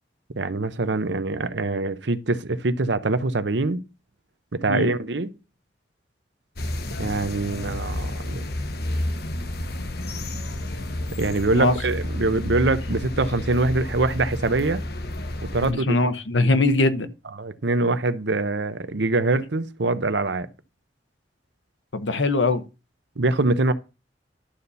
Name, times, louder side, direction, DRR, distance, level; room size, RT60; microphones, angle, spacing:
voice 1, 0.3-3.8 4.5-5.3 7.0-8.5 11.2-14.8 15.4-16.0 17.4-20.5 23.2-23.7, right 2 dB, 75° right, 0.8 m, -24 dB
sound 1, 6.6-15.7, left 1 dB, 55° left, 1.0 m, -30 dB
voice 2, 15.6-17.1 21.9-22.6, left 2 dB, 85° left, 1.0 m, -21 dB
11.5 x 4.2 x 6.9 m
head